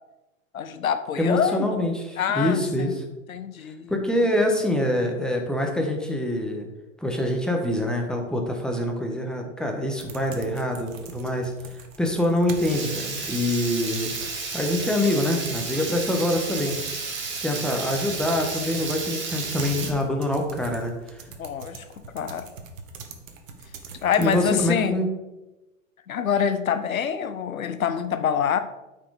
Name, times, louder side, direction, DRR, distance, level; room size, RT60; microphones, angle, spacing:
voice 1, 0.5-1.8 2.2-2.9 3.3-3.9 21.4-21.8 22.1-22.5 24.0-25.0 26.1-28.6, left 8 dB, 85° left, 11 dB, 0.9 m, -26 dB
voice 2, 1.1-3.0 3.9-6.7 7.0-14.1 14.5-16.8 17.4-21.3 24.2-25.1, left 1 dB, ahead, 1 dB, 1.5 m, -25 dB
sound 1, 9.9-24.7, right 4 dB, 70° right, 1.4 m, -43 dB
Water tap faucet / Liquid, 12.5-19.9, right 4 dB, 30° right, 2.2 m, -32 dB
8.8 x 5.3 x 5.0 m, 1.1 s
hypercardioid pair, 100°, 40 cm